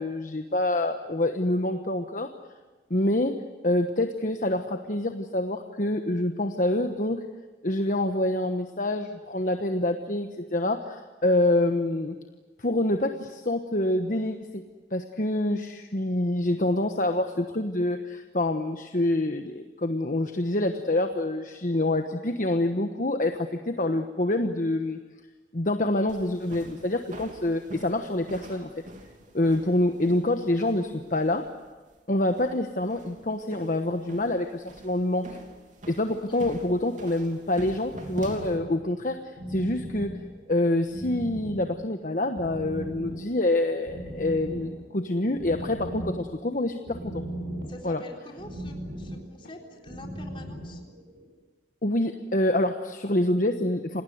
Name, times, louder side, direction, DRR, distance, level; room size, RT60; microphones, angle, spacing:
voice 1, 0.0-2.3 2.9-3.3 3.6-7.2 7.6-12.2 12.6-14.6 14.9-25.0 25.5-28.7 29.3-31.4 32.1-35.4 35.9-40.1 40.5-47.2 47.8-48.0 51.8-54.0, left 1 dB, 45° left, 6 dB, 1.2 m, -26 dB
sound 1, 26.1-38.6, right 1 dB, 45° right, 3.1 m, -46 dB
voice 2, 36.1-36.5 47.7-50.8, left 1 dB, 30° left, 1 dB, 3.9 m, -45 dB
sound 2, 37.8-51.3, equal, 60° right, 7.6 m, -39 dB
28.5 x 18.5 x 9.4 m, 1.3 s
head